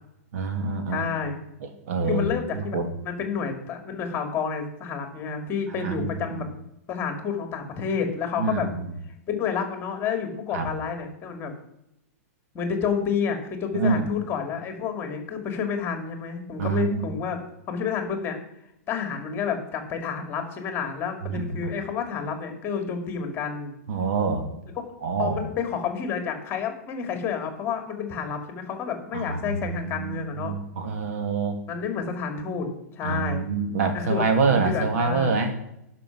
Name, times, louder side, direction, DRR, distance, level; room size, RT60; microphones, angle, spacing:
voice 1, 0.3-1.0 1.6-2.2 2.5-2.9 5.8-6.5 8.4-8.9 10.5-10.7 13.7-14.0 16.6-17.1 21.2-21.7 23.9-24.4 25.0-25.4 29.1-31.6 33.0-35.7, right 4 dB, 65° right, 6 dB, 2.1 m, -26 dB
voice 2, 0.9-1.4 2.0-2.8 3.0-6.5 6.9-8.7 9.3-11.5 12.5-17.4 17.7-18.4 18.9-23.7 25.2-30.5 31.7-32.7 33.0-33.4 33.9-35.3, left 6 dB, 25° left, 6 dB, 2.1 m, -29 dB
11.0 x 5.9 x 5.8 m, 0.83 s
hypercardioid pair, 135°, 9 cm